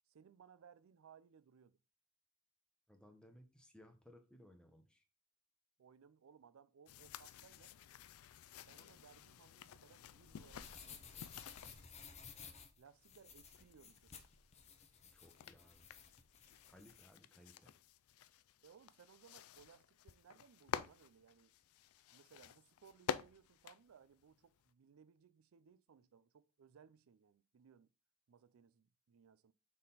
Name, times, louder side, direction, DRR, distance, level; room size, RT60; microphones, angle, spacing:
voice 1, 0.1-1.8 5.8-7.7 8.6-11.1 12.8-14.2 18.6-21.5 22.1-27.9 28.3-29.5, right 7 dB, 70° right, 0.4 m, -64 dB
voice 2, 2.9-5.0 15.1-15.8 16.7-17.7, left 1 dB, 5° left, 0.9 m, -62 dB
sound 1, 6.9-11.9 12.8-24.7, left 8 dB, 85° left, 0.4 m, -50 dB
sound 2, 10.1-17.1, left 6 dB, 30° left, 0.7 m, -56 dB
6.4 x 3.7 x 4.0 m
head